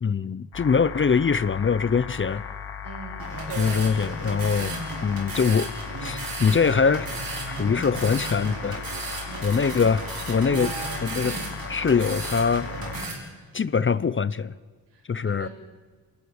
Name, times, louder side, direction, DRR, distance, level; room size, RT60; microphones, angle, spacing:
voice 1, 0.0-2.4 3.6-5.7 6.0-7.1 7.5-8.8 9.4-10.7 11.0-11.4 11.7-12.7 13.5-14.5 15.1-15.5, left 5 dB, 30° left, 17 dB, 0.5 m, -23 dB
sound 1, 0.5-13.1, left 7 dB, 70° left, 2.0 m, -37 dB
voice 2, 2.8-3.8 9.3-9.8 14.9-15.5, right 5 dB, 85° right, 3 dB, 5.8 m, -41 dB
sound 2, 3.2-13.1, right 3 dB, 55° right, 5.9 m, -34 dB
27.5 x 12.5 x 9.5 m, 1.5 s
wide cardioid pair, 135°, 41 cm